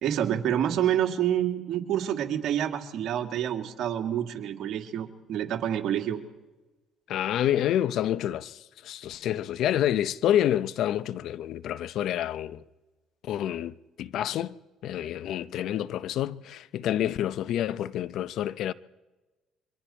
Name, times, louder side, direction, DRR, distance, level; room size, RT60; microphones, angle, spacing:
voice 1, 0.0-6.2, right 10 dB, 65° right, 2.3 m, -28 dB
voice 2, 7.1-12.6 13.2-14.6 14.8-18.7, left 11 dB, 70° left, 0.6 m, -28 dB
29.0 x 24.5 x 4.4 m
supercardioid pair, 80°, 0 cm